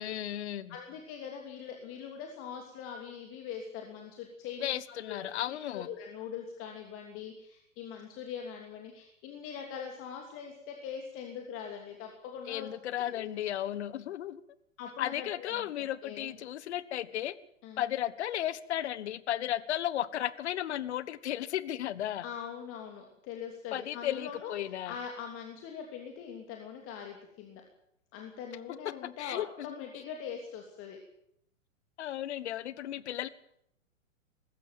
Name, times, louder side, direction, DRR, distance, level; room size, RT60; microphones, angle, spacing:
voice 1, 0.0-0.8 4.6-5.9 12.5-14.4 15.0-17.4 17.8-22.2 23.7-25.0 28.8-29.8 32.0-33.3, left 12 dB, 55° left, 17 dB, 1.4 m, -34 dB
voice 2, 0.7-12.7 13.1-13.3 14.8-16.3 17.6-17.8 22.2-24.5 24.9-27.6 28.1-31.0, left 7 dB, 35° left, 2 dB, 3.1 m, -42 dB
20.0 x 15.5 x 8.9 m, 0.76 s
figure-of-eight pair, 110°, 39 cm